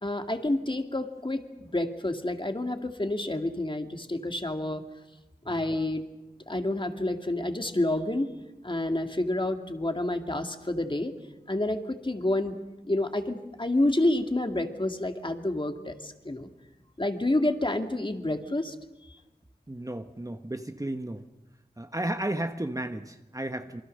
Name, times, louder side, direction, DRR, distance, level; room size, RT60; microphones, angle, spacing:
voice 1, 0.0-4.8 5.5-6.0 6.5-8.3 8.6-11.1 11.5-12.5 12.9-16.5 17.0-18.8, left 1 dB, 30° left, 6 dB, 2.1 m, -29 dB
voice 2, 19.7-21.2 21.8-23.8, right 1 dB, 20° right, 7 dB, 1.1 m, -33 dB
27.0 x 23.5 x 6.5 m, 1.0 s
wide cardioid pair, 75°, 17 cm